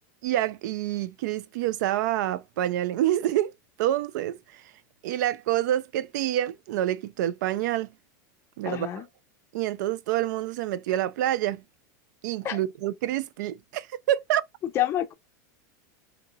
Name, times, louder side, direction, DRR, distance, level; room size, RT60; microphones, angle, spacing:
voice 1, 0.2-3.5 3.8-4.4 5.0-7.9 8.6-8.9 9.5-11.6 12.2-14.4, right 13 dB, 70° right, 0.4 m, -27 dB
voice 2, 8.7-9.1 12.4-12.6 14.6-15.1, left 12 dB, 25° left, 0.5 m, -28 dB
2.8 x 2.6 x 3.7 m
supercardioid pair, 160°, 10 cm